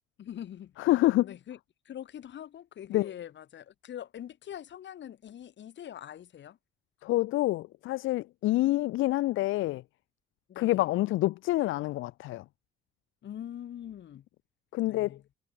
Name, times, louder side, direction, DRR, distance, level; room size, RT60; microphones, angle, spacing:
voice 1, 0.2-0.7 1.2-1.6 1.8-6.6 10.5-10.8 13.2-14.2 14.8-15.2, left 10 dB, 65° left, 3.0 m, -43 dB
voice 2, 0.8-1.3 2.9-3.1 7.0-9.8 10.6-12.4 14.7-15.2, left 17 dB, 80° left, 0.5 m, -27 dB
cardioid pair, 90°, 20 cm